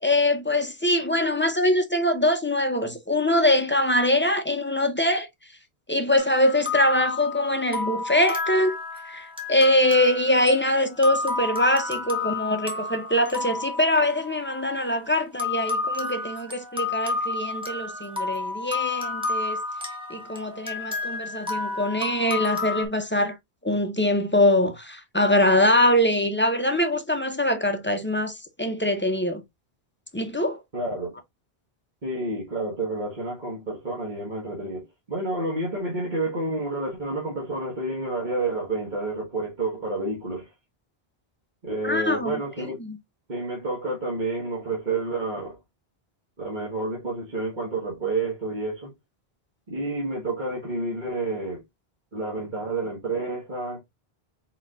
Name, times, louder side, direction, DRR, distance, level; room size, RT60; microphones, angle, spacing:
voice 1, 0.0-5.3 5.9-8.8 9.1-19.6 20.1-23.4 23.6-29.4 30.1-30.6 41.8-43.0, left 1 dB, 15° left, 0.5 m, -23 dB
sound 1, 6.2-14.8 15.4-22.9, left 4 dB, 5° right, 1.1 m, -31 dB
voice 2, 30.7-31.1 32.0-40.5 41.6-42.8 43.3-45.6 46.4-48.9 49.7-51.6 52.1-53.8, right 2 dB, 45° right, 1.6 m, -29 dB
4.6 x 4.2 x 2.4 m
omnidirectional pair, 1.1 m